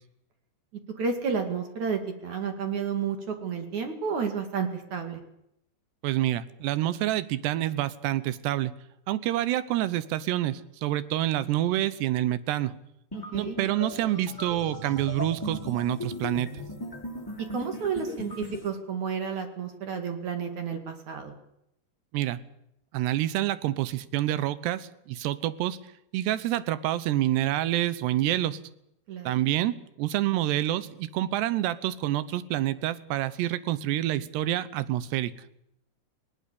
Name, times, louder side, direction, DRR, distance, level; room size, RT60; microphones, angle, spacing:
voice 1, 1.0-5.2 13.1-13.6 17.5-21.3 29.1-29.3, right 6 dB, 50° right, 7 dB, 3.2 m, -31 dB
voice 2, 6.0-8.7 9.1-12.7 13.3-16.5 22.1-22.4 22.9-25.8 26.1-28.6 29.3-35.3, right 14 dB, 80° right, 16 dB, 3.1 m, -27 dB
sound 1, 13.1-18.7, left 2 dB, 5° left, 6.1 m, -37 dB
20.0 x 19.0 x 8.4 m, 0.79 s
omnidirectional pair, 4.9 m